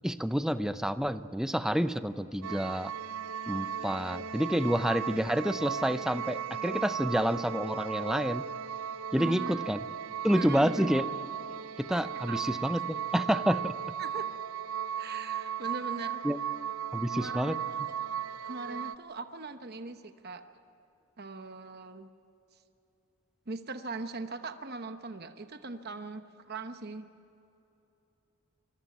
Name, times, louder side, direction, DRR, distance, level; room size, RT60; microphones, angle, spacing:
voice 1, 0.0-2.9 3.5-8.5 9.1-9.8 10.2-11.1 11.8-13.7 16.2-16.4 16.9-17.6, equal, ahead, 11 dB, 0.6 m, -29 dB
sound 1, 2.4-18.9, right 8 dB, 70° right, 0.6 m, -36 dB
voice 2, 9.2-9.8 10.3-10.9 12.3-12.4 14.0-14.3 15.0-16.2 17.0-17.6 18.4-20.4 21.2-22.1 23.5-27.1, right 3 dB, 45° right, 8 dB, 1.0 m, -40 dB
26.0 x 21.0 x 9.3 m, 3.0 s
head